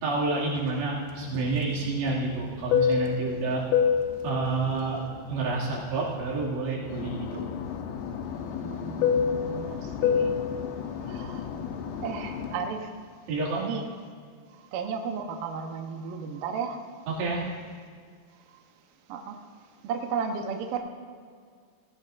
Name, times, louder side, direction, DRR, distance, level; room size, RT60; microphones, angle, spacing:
voice 1, 0.0-3.6 4.2-5.0 5.3-7.4 13.3-13.6 17.1-17.5, right 3 dB, 85° right, -5 dB, 4.6 m, -29 dB
Fixed-wing aircraft airplane, 1.1-6.5 6.8-12.7, left 7 dB, 85° left, 3.0 m, -29 dB
voice 2, 8.6-10.4 11.0-11.5 12.0-13.0 13.6-13.9 14.6-16.8 19.1-19.5 19.8-20.8, right 6 dB, 70° right, 4 dB, 2.2 m, -34 dB
18.0 x 16.5 x 2.6 m, 2.1 s
omnidirectional pair, 4.9 m